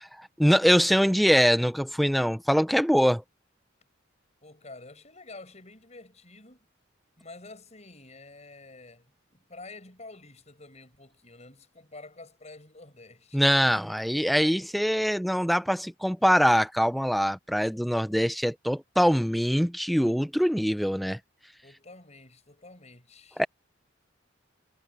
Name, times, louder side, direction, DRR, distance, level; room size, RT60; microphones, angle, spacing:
voice 1, 0.2-3.2 13.3-21.2 23.4-23.5, equal, ahead, 0.9 m, -23 dB
voice 2, 4.4-6.7 7.2-13.8 21.6-23.4, left 3 dB, 35° left, 5.9 m, -49 dB
head